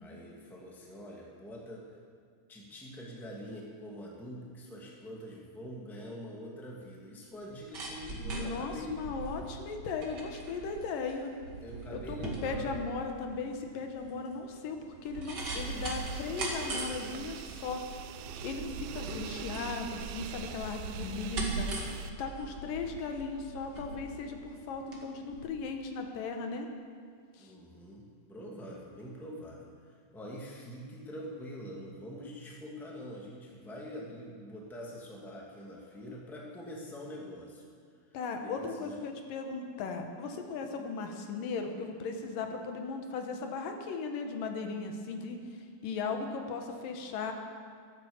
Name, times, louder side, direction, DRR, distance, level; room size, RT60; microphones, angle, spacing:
voice 1, 0.0-1.9 2.5-8.9 10.7-10.8 11.6-12.9 27.4-37.7 38.3-38.9, equal, ahead, -3 dB, 1.4 m, -45 dB
sound 1, 7.4-25.0 25.3-25.4, right 3 dB, 35° right, 2.1 m, -40 dB
voice 2, 8.3-11.3 11.9-17.9 18.4-26.7 27.3-27.5 38.1-47.3, left 4 dB, 85° left, 4 dB, 2.8 m, -37 dB
sound 2, 15.4-22.1, right 9 dB, 85° right, 2.3 m, -44 dB
13.5 x 10.5 x 7.1 m, 2.1 s
omnidirectional pair, 3.8 m